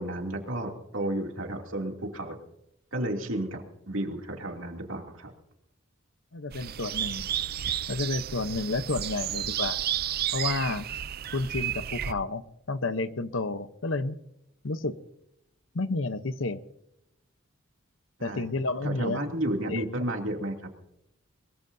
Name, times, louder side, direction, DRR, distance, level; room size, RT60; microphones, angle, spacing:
voice 1, 0.0-2.4 2.9-5.3 18.2-18.5 18.8-20.6, right 1 dB, 75° right, 2 dB, 2.8 m, -32 dB
voice 2, 6.3-7.3 7.9-9.8 10.3-10.8 11.3-12.4 12.7-14.2 14.6-14.9 15.7-16.6 18.2-19.2 19.7-19.8, left 3 dB, 70° left, 13 dB, 0.9 m, -30 dB
sound 1, 6.5-12.1, right 11 dB, 50° right, 0.5 m, -32 dB
22.5 x 22.0 x 2.7 m, 0.83 s
head